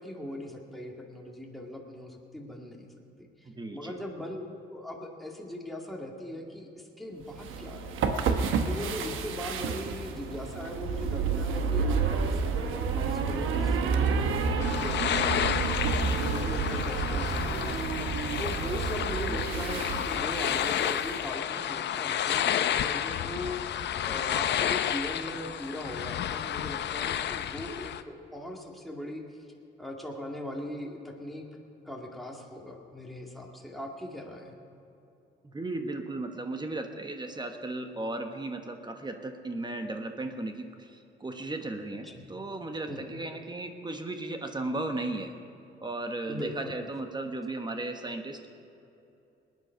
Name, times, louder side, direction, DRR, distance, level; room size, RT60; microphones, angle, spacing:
voice 1, 0.0-2.9 3.2-15.7 16.2-17.8 18.4-23.6 24.0-29.2 29.8-31.5 31.9-34.6 42.0-42.4 42.9-43.2 46.3-46.8, left 1 dB, ahead, -1 dB, 2.1 m, -40 dB
voice 2, 3.4-4.0 9.7-9.8 19.2-19.4 35.4-45.3 45.8-48.5, right 2 dB, 20° right, 5 dB, 1.2 m, -36 dB
sound 1, 7.3-21.2, right 5 dB, 85° right, 1.1 m, -30 dB
sound 2, 14.6-28.0, left 10 dB, 60° left, 0.6 m, -31 dB
19.5 x 9.5 x 5.7 m, 2.8 s
cardioid pair, 90°, 20 cm